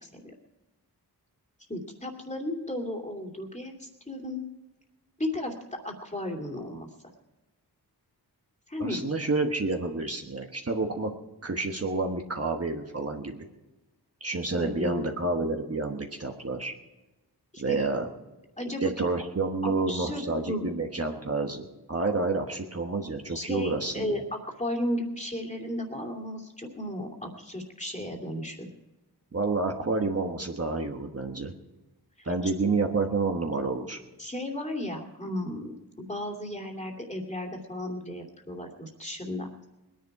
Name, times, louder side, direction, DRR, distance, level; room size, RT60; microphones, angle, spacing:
voice 1, 0.0-0.3 1.7-4.4 5.2-6.9 8.7-9.0 14.5-15.1 17.5-17.8 18.6-18.8 19.6-20.7 23.3-28.7 32.2-32.5 34.2-35.8 36.1-39.5, left 1 dB, 15° left, 1 dB, 2.6 m, -34 dB
voice 2, 8.8-11.1 11.4-13.5 14.2-16.7 17.6-18.1 18.8-24.2 29.3-31.5 32.2-34.0, right 3 dB, 35° right, 2 dB, 1.3 m, -29 dB
21.0 x 10.5 x 4.8 m, 1.1 s
wide cardioid pair, 85°, 39 cm